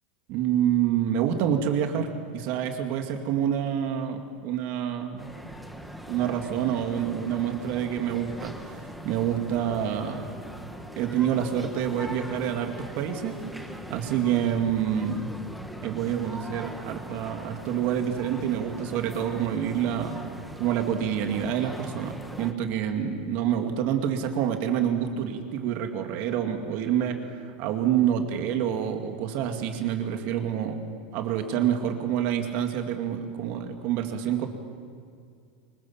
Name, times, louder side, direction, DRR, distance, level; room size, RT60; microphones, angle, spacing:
voice 1, 0.3-5.3 6.0-10.2 11.0-13.4 13.9-15.3 15.8-20.2 20.6-30.8 31.1-34.5, right 9 dB, 40° right, 4 dB, 2.3 m, -27 dB
sound 1, 5.2-22.5, equal, ahead, 1.3 m, -41 dB
25.0 x 23.0 x 7.2 m, 2.3 s
supercardioid pair, 170°, 5 cm